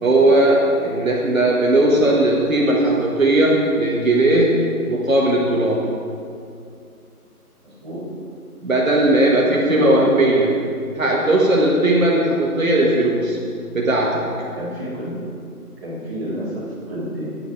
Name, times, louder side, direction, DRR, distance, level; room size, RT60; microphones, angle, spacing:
voice 1, 0.0-5.9 8.6-10.6 10.9-13.4 13.7-14.3, right 1 dB, 60° right, -3 dB, 1.6 m, -17 dB
voice 2, 7.6-8.0 9.2-10.0 14.5-15.2 15.8-17.3, right 1 dB, 15° right, -13 dB, 2.9 m, -29 dB
10.0 x 9.8 x 4.8 m, 2.4 s
figure-of-eight pair, 175°, 46 cm